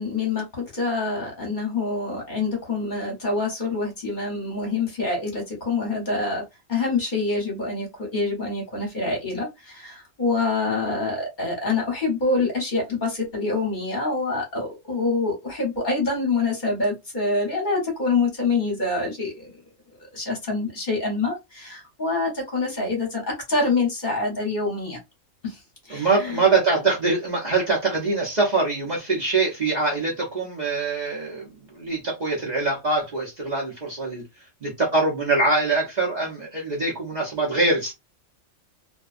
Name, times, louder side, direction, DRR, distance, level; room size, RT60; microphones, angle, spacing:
voice 1, 0.0-6.4 6.7-19.5 20.1-25.0 25.4-26.4, left 3 dB, 40° left, 1.0 m, -26 dB
voice 2, 25.9-37.9, right 3 dB, 40° right, 0.7 m, -24 dB
2.5 x 2.2 x 2.4 m
omnidirectional pair, 1.3 m